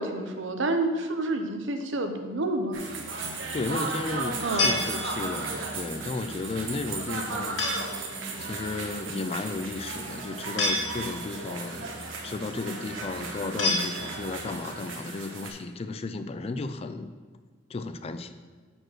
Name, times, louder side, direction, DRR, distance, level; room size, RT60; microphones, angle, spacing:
voice 1, 0.0-2.8 4.4-4.8 13.5-13.9, right 2 dB, 70° right, 6 dB, 0.7 m, -29 dB
sound 1, 2.7-15.5, right 3 dB, 90° right, 1.1 m, -35 dB
voice 2, 3.5-7.7 8.4-12.0 12.2-17.1 17.7-18.3, left 3 dB, 30° left, 10 dB, 0.4 m, -34 dB
sound 2, 4.6-5.5 7.6-8.1 10.6-11.4 13.6-14.5, left 2 dB, 65° left, 1.7 m, -29 dB
6.1 x 4.4 x 6.4 m, 1.4 s
head